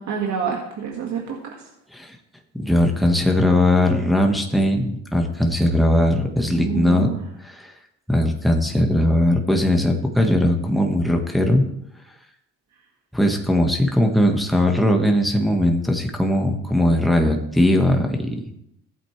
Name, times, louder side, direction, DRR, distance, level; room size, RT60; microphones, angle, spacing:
voice 1, 0.0-1.6 6.4-7.2, right 7 dB, 70° right, -1 dB, 2.0 m, -28 dB
voice 2, 2.6-7.1 7.4-7.7 8.1-11.6 13.1-18.4, left 1 dB, ahead, 1 dB, 1.6 m, -19 dB
15.0 x 8.4 x 3.3 m, 0.76 s
cardioid pair, 90°, 30 cm